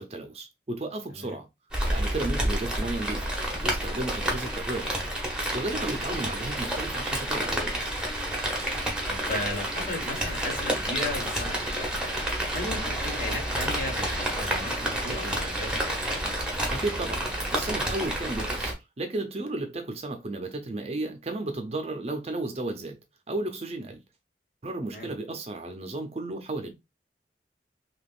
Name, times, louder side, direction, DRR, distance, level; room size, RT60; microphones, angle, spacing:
voice 1, 0.0-1.5 1.9-3.3 3.6-5.1 5.5-7.9 16.7-17.2 17.5-23.0 23.3-24.0 24.6-26.7, right 2 dB, 35° right, 0.6 m, -33 dB
Rain, 1.7-18.7, right 1 dB, 5° right, 0.8 m, -29 dB
voice 2, 9.1-11.9 12.5-15.7 24.9-25.1, left 2 dB, 50° left, 1.3 m, -35 dB
3.5 x 2.9 x 2.4 m
head